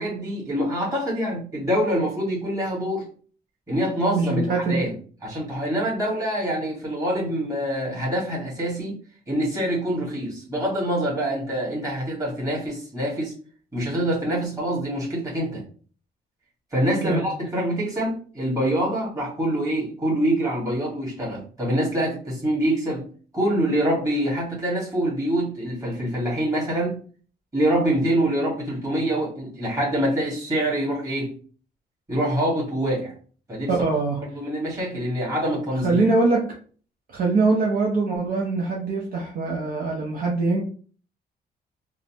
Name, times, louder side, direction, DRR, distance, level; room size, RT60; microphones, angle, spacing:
voice 1, 0.0-3.1 3.7-4.9 5.2-9.0 9.3-13.4 13.7-15.6 16.7-23.1 23.3-27.0 27.5-31.4 32.1-33.1 33.5-33.7 34.3-36.0, right 1 dB, 20° right, -5 dB, 1.5 m, -25 dB
voice 2, 4.2-4.8 17.0-17.2 33.7-34.2 35.8-36.5 37.1-40.6, right 3 dB, 55° right, -2 dB, 0.7 m, -23 dB
3.8 x 2.0 x 2.8 m, 0.42 s
cardioid pair, 140°, 18 cm